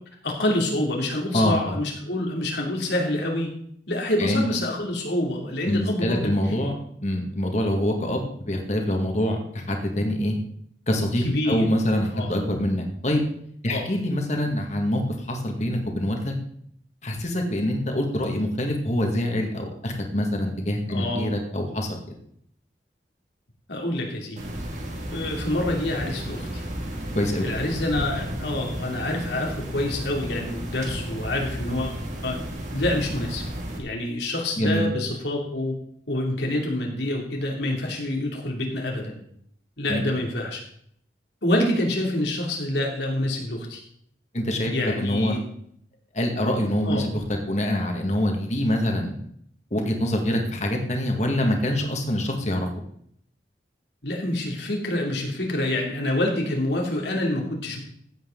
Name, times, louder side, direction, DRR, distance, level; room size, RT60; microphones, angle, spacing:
voice 1, 0.2-3.5 3.9-6.3 11.2-11.7 12.1-12.3 13.7-13.9 20.9-21.3 23.7-24.5 25.1-26.6 27.4-32.4 32.7-33.4 33.8-35.7 36.1-39.2 39.8-40.6 41.4-43.8 44.6-45.4 46.8-47.0 54.0-57.8, left 1 dB, 80° left, 0 dB, 2.9 m, -27 dB
voice 2, 1.3-1.8 4.2-4.4 5.7-6.7 7.0-10.4 10.9-13.2 13.6-16.3 17.0-21.9 27.1-27.5 34.6-34.8 39.9-40.2 44.3-45.4 46.1-49.1 49.7-52.7, left 1 dB, 40° left, 2 dB, 2.1 m, -25 dB
sound 1, 24.4-33.8, right 1 dB, 45° right, 2.4 m, -33 dB
15.5 x 8.3 x 3.9 m, 0.67 s
head